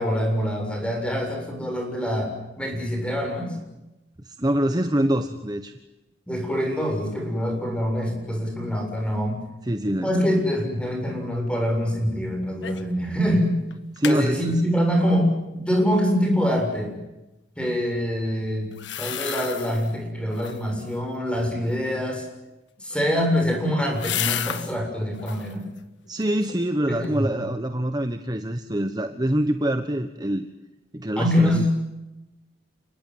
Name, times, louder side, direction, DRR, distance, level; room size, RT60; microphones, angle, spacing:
voice 1, 0.0-3.6 6.3-9.4 10.0-13.6 14.0-16.9 17.6-18.7 19.0-22.3 22.8-25.6 26.9-27.3 31.2-31.7, equal, 5° left, 3 dB, 7.3 m, -25 dB
voice 2, 4.2-5.7 9.6-10.3 14.0-14.6 26.1-30.5 30.9-31.7, right 1 dB, 20° right, 8 dB, 1.2 m, -25 dB
sound 1, 12.6-13.0 13.3-13.4 13.7-14.2 18.7-19.9 20.3-20.8 22.8-24.7 25.1-25.6 26.0-26.7 27.0-27.1, left 9 dB, 75° left, 1.6 m, -32 dB
30.0 x 19.0 x 9.4 m, 0.99 s
head